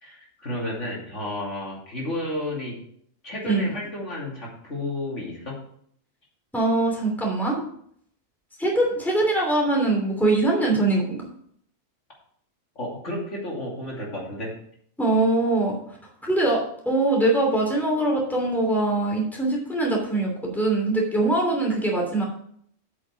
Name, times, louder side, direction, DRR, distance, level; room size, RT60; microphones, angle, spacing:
voice 1, 0.0-2.7 3.2-5.6 12.7-14.5, left 1 dB, 60° left, -4 dB, 3.1 m, -32 dB
voice 2, 6.5-7.6 8.6-11.2 15.0-15.8 16.2-22.2, right 2 dB, ahead, -2 dB, 2.8 m, -22 dB
8.4 x 6.4 x 5.8 m, 0.65 s
omnidirectional pair, 1.4 m